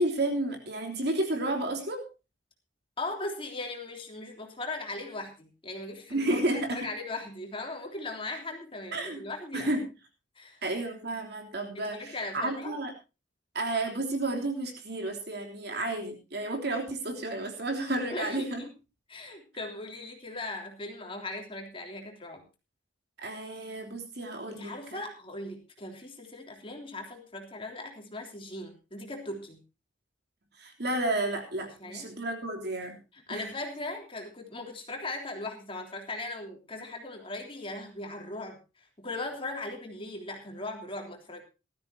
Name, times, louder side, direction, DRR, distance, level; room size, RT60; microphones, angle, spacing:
voice 1, 0.0-2.1 6.1-6.9 8.9-9.2 9.5-9.9 10.6-12.9 13.5-18.6 23.2-25.1 30.6-33.0 33.3-33.5, right 1 dB, 60° right, 3 dB, 3.4 m, -31 dB
voice 2, 3.0-6.4 6.7-9.7 10.4-10.6 11.8-12.8 18.1-18.7 19.1-22.4 24.5-29.6 31.8-32.1 33.1-38.6 39.0-41.4, left 2 dB, 30° left, 3 dB, 3.4 m, -38 dB
18.5 x 14.0 x 2.9 m, 0.30 s
head